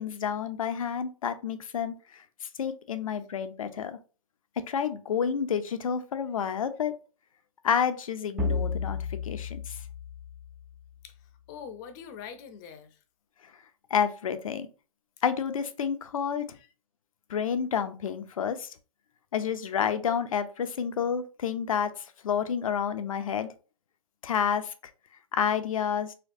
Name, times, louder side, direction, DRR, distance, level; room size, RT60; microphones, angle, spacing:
voice 1, 0.0-2.2 2.6-4.0 4.6-7.0 7.6-9.8 13.9-14.7 15.2-16.6 17.3-18.7 19.3-23.5 24.2-24.7 25.3-26.1, left 7 dB, 75° left, 0.6 m, -29 dB
sound 1, 8.4-11.0, left 4 dB, 10° right, 0.4 m, -33 dB
voice 2, 11.0-13.0 16.5-16.7, left 7 dB, 35° left, 0.6 m, -44 dB
4.3 x 2.3 x 2.7 m
hypercardioid pair, 135°, 18 cm